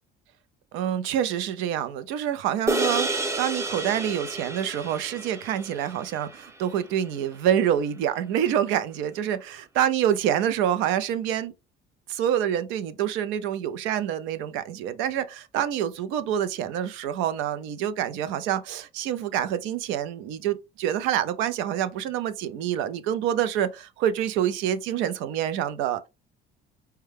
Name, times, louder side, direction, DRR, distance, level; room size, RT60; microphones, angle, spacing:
voice 1, 0.7-11.5 12.1-26.1, right 10 dB, 85° right, 0.5 m, -27 dB
sound 1, 2.7-7.2, right 2 dB, 15° right, 0.6 m, -30 dB
4.6 x 2.2 x 3.3 m
cardioid pair, 110°, 20 cm